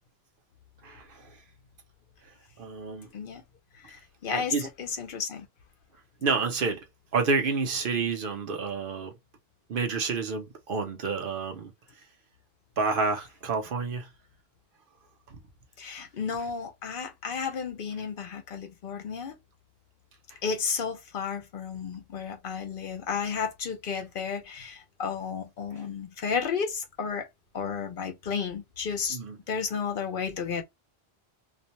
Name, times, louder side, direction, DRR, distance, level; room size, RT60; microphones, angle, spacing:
voice 1, 0.8-1.4 2.6-3.1 4.3-4.7 6.2-6.9 7.1-9.2 9.7-11.7 12.8-14.1 29.1-29.4, right 4 dB, 60° right, 0.8 m, -29 dB
voice 2, 4.2-5.5 15.8-19.3 20.4-27.3 27.5-29.2 29.5-30.6, left 6 dB, 65° left, 0.7 m, -32 dB
2.5 x 2.1 x 2.8 m
omnidirectional pair, 1.0 m